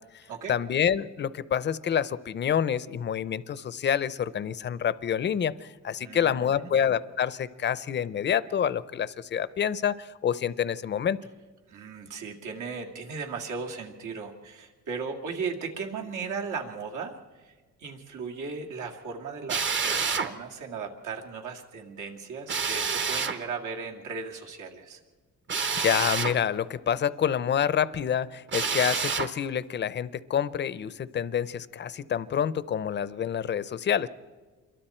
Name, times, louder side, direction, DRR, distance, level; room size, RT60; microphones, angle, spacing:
voice 1, 0.5-11.2 25.8-34.1, left 8 dB, 35° left, 17 dB, 0.6 m, -27 dB
voice 2, 6.0-6.7 11.7-17.5 17.8-25.0, right 5 dB, 80° right, 1 dB, 2.5 m, -37 dB
Drill, 19.5-20.3 22.5-23.4 25.5-26.4 28.5-29.3, right 5 dB, 40° right, 1.0 m, -28 dB
27.5 x 22.5 x 4.4 m, 1.4 s
cardioid pair, 155°, 30 cm